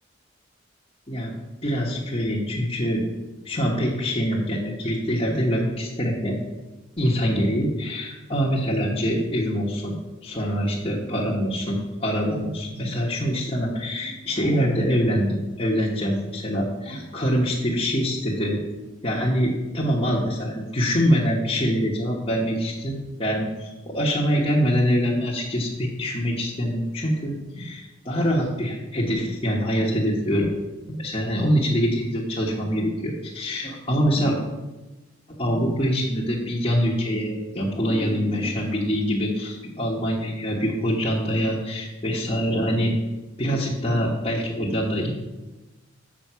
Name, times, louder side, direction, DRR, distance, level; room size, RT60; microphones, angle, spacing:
voice 1, 1.6-3.0 3.4-6.4 7.0-9.9 10.2-18.6 19.0-30.5 30.9-34.4 35.4-42.9 43.4-45.1, equal, 25° left, -6 dB, 1.2 m, -24 dB
7.4 x 6.8 x 5.7 m, 1.1 s
head